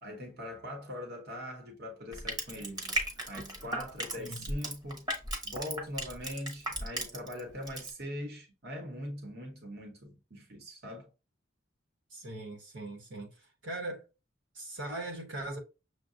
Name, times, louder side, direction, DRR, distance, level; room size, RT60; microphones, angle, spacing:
voice 1, 0.0-3.0 3.3-5.1 5.4-11.1, equal, 55° right, 1.0 m, -41 dB
Crushing, 2.1-7.4 7.7-7.9, right 1 dB, 20° right, 0.9 m, -35 dB
voice 2, 4.2-4.5 12.1-14.1 14.5-15.6, right 2 dB, 80° right, 1.0 m, -40 dB
6.3 x 2.2 x 2.5 m
head